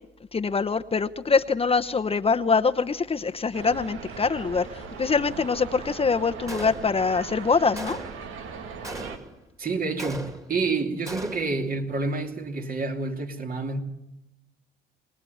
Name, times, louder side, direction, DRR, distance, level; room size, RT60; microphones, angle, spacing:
voice 1, 0.3-8.0, left 5 dB, 30° left, 0.9 m, -24 dB
sound 1, 3.5-9.2, right 5 dB, 85° right, 2.3 m, -39 dB
Gunshot gunfire, 6.5-7.2 7.8-8.3 8.8-9.5 10.0-10.7 11.1-11.6, right 1 dB, 15° right, 2.8 m, -38 dB
voice 2, 9.6-13.8, right 3 dB, 45° right, 3.0 m, -28 dB
24.5 x 20.0 x 9.4 m
cardioid pair, 90°, 20 cm